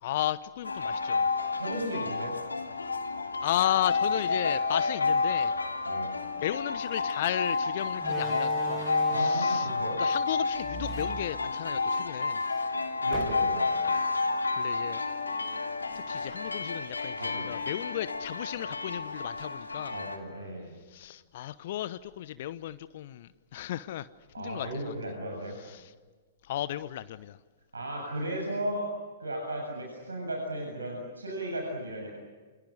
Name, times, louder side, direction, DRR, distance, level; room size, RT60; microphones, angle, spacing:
voice 1, 0.0-1.3 3.4-5.5 6.4-8.9 9.1-9.7 10.0-12.4 14.6-15.0 15.9-20.0 20.9-24.1 24.4-25.0 25.6-25.9 26.4-27.4, left 13 dB, 50° left, 15 dB, 0.9 m, -34 dB
sound 1, 0.6-20.2, left 4 dB, 80° left, 3.1 m, -30 dB
voice 2, 1.6-2.4 5.9-6.1 9.1-10.0 13.0-13.7 17.2-17.5 19.9-20.7 24.3-25.6 27.7-28.9 29.2-32.1, right 1 dB, 80° right, 1 dB, 7.6 m, -35 dB
Slam, 6.9-7.1 8.0-9.6 10.6-12.0 12.4-12.5 13.1-13.7, right 3 dB, 15° right, 2.1 m, -40 dB
29.0 x 28.0 x 6.5 m, 1.4 s
figure-of-eight pair, 110°, 0 cm